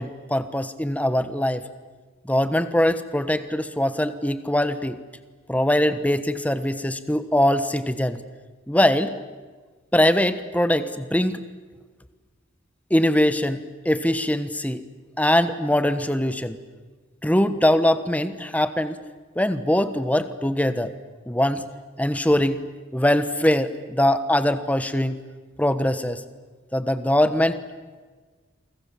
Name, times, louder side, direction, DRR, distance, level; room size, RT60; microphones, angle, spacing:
voice 1, 0.0-1.6 2.2-5.0 5.5-8.2 8.7-9.1 9.9-11.4 12.9-14.8 15.2-16.6 17.2-19.0 19.4-20.9 21.3-21.6 22.0-22.6 22.9-25.1 25.6-26.2 26.7-27.6, left 1 dB, 10° left, 12 dB, 1.2 m, -22 dB
28.5 x 24.0 x 7.5 m, 1.4 s
head